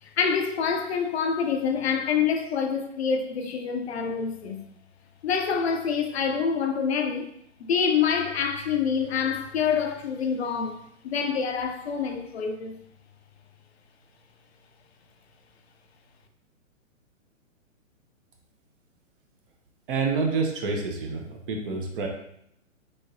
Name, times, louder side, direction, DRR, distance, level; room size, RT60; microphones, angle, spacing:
voice 1, 0.0-4.6 5.2-7.3 7.6-12.8, left 6 dB, 55° left, 0.5 m, -26 dB
voice 2, 19.9-22.1, right 4 dB, 40° right, 0.8 m, -28 dB
4.1 x 3.1 x 2.5 m
figure-of-eight pair, 125°, 40 cm